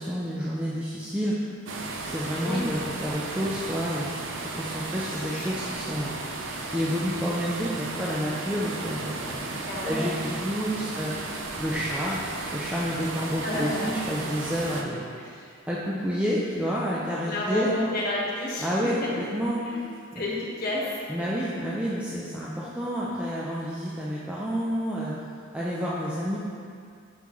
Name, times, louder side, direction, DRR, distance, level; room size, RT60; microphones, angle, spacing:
voice 1, 0.0-1.3 2.0-4.1 4.4-6.1 6.4-11.1 11.6-12.2 12.5-15.0 15.7-17.7 18.6-19.6 20.1-20.3 21.1-25.1 25.5-26.4, equal, 5° right, -7 dB, 0.4 m, -29 dB
sound 1, 1.7-14.8, right 3 dB, 60° right, 0.5 m, -35 dB
voice 2, 5.1-5.7 9.7-10.1 10.7-11.0 13.4-13.9 14.8-15.5 17.2-19.1 19.6-19.8 20.1-21.0 21.3-21.5, left 1 dB, 45° left, -6 dB, 1.3 m, -31 dB
5.9 x 5.6 x 3.0 m, 2.3 s
head